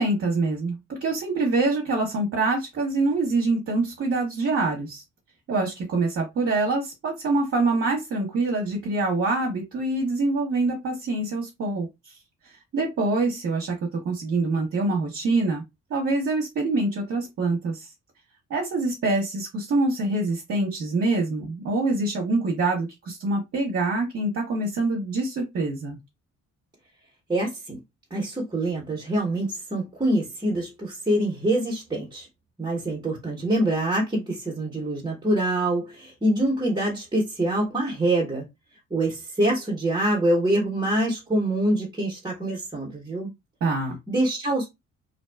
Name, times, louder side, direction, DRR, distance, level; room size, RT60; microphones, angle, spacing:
voice 1, 0.0-5.0 5.5-12.1 12.7-15.6 15.9-17.9 18.5-26.0 43.6-44.0, right 2 dB, 50° right, 0.8 m, -25 dB
voice 2, 27.3-27.8 28.1-32.3 32.6-38.5 38.9-43.3 44.1-44.7, right 1 dB, 15° right, 0.8 m, -25 dB
2.5 x 2.2 x 2.2 m
cardioid pair, 90°, 30 cm